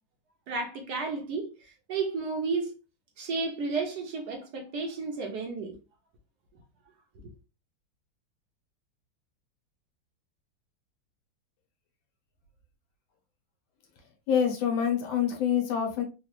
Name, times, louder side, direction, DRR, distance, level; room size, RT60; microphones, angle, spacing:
voice 1, 0.5-2.7 3.2-5.7, right 4 dB, 65° right, 1.2 m, -32 dB
voice 2, 14.3-16.0, left 8 dB, 90° left, 1.7 m, -26 dB
4.0 x 2.4 x 3.0 m
omnidirectional pair, 2.1 m